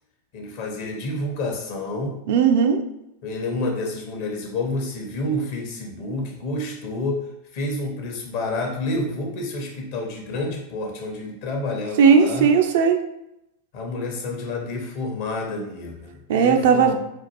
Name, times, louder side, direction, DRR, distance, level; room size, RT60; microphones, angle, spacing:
voice 1, 0.3-2.2 3.2-7.2 7.5-12.5 13.7-16.9, left 2 dB, 50° left, 1 dB, 0.8 m, -29 dB
voice 2, 2.3-2.8 12.0-13.0 16.3-16.9, right 6 dB, 55° right, 5 dB, 0.4 m, -16 dB
4.2 x 2.4 x 2.9 m, 0.84 s
figure-of-eight pair, 90°, 0 cm